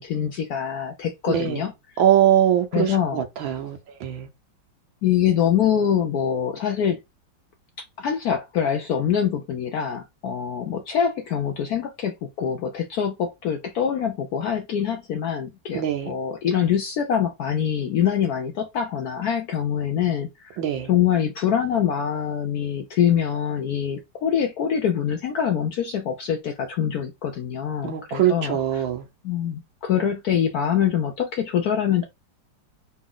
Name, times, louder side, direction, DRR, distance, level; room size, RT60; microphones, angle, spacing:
voice 1, 0.0-1.7 2.7-3.5 5.0-7.0 8.0-20.6 20.9-28.8 29.2-32.1, left 8 dB, 70° left, 0.9 m, -24 dB
voice 2, 1.3-1.7 2.0-4.3 15.7-16.1 20.6-20.9 27.8-29.1, right 10 dB, 80° right, 1.6 m, -22 dB
4.0 x 2.4 x 3.7 m
omnidirectional pair, 2.1 m